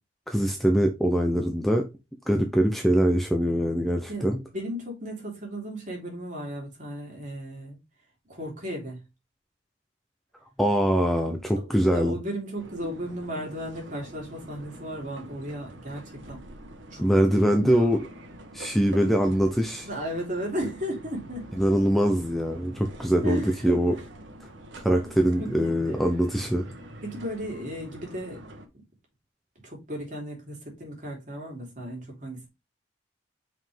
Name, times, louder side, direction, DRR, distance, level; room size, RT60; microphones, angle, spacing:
voice 1, 0.3-1.8 2.3-4.4 10.6-12.1 17.0-18.0 18.5-19.9 21.6-23.9 24.8-26.6, equal, ahead, 0.8 m, -23 dB
voice 2, 4.1-7.8 8.3-9.0 11.3-16.4 16.9-17.0 17.3-17.9 19.9-21.5 23.2-24.0 25.0-25.1 25.4-26.1 27.0-28.5 29.6-32.5, equal, 40° right, 3.3 m, -35 dB
sound 1, 12.6-28.7, right 1 dB, 85° right, 1.4 m, -45 dB
5.7 x 5.3 x 3.5 m
head